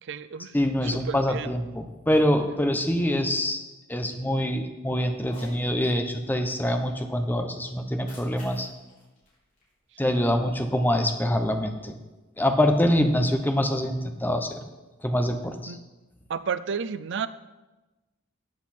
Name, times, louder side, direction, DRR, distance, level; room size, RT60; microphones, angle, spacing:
voice 1, 0.0-0.6 1.1-1.5 15.7-15.8 16.3-17.3, right 6 dB, 60° right, 14 dB, 0.5 m, -31 dB
voice 2, 0.5-3.6 3.9-8.7 10.0-12.0 12.4-14.6 15.0-15.8, left 1 dB, 10° left, 6 dB, 0.9 m, -25 dB
Cat, 5.2-5.6 7.8-10.2, left 1 dB, 40° left, 4.7 m, -50 dB
14.0 x 8.2 x 4.3 m, 1.1 s
head